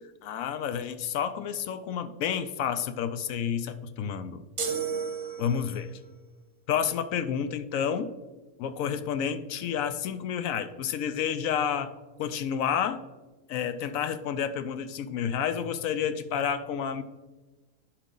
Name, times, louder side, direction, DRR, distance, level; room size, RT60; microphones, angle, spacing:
voice 1, 0.2-4.4 5.4-5.9 6.7-8.1 8.6-11.9 12.2-13.0 13.5-17.0, left 8 dB, 75° left, 11 dB, 0.9 m, -30 dB
sound 1, 4.6-5.9, right 6 dB, 75° right, 1.4 m, -32 dB
11.0 x 4.8 x 3.8 m, 1.2 s
omnidirectional pair, 1.5 m